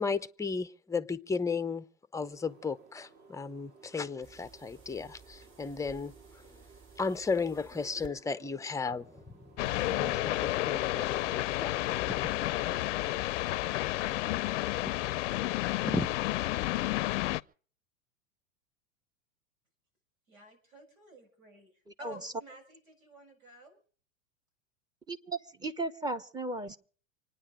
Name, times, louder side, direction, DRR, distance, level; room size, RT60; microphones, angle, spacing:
voice 1, 0.0-1.8 2.1-6.1 7.0-11.9 15.2-15.3 15.9-16.1, left 4 dB, 10° left, 0.7 m, -35 dB
sound 1, 2.2-13.2, right 3 dB, 45° right, 6.8 m, -59 dB
sound 2, 4.2-8.1 10.4-10.5, right 5 dB, 30° right, 3.8 m, -56 dB
sound 3, 9.6-17.4, left 16 dB, 60° left, 0.6 m, -31 dB
voice 2, 20.3-21.7 22.0-23.8, equal, 85° right, 7.1 m, -51 dB
voice 3, 21.9-22.3 25.1-26.8, right 2 dB, 10° right, 1.1 m, -36 dB
26.0 x 10.0 x 5.0 m
hypercardioid pair, 105°, 41 cm